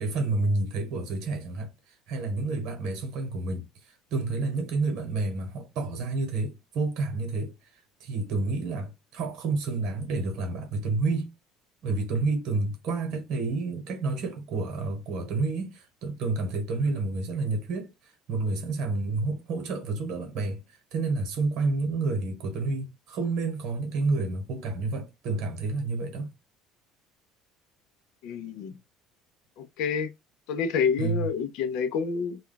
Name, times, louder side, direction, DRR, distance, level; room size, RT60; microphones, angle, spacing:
voice 1, 0.0-7.5 8.0-11.3 11.8-17.9 18.3-20.6 20.9-26.3 31.0-31.3, right 3 dB, 55° right, 1.0 m, -29 dB
voice 2, 28.2-28.7 29.6-30.1 30.5-32.4, left 6 dB, 60° left, 0.4 m, -28 dB
2.3 x 2.2 x 3.7 m
cardioid pair, 170°, 0 cm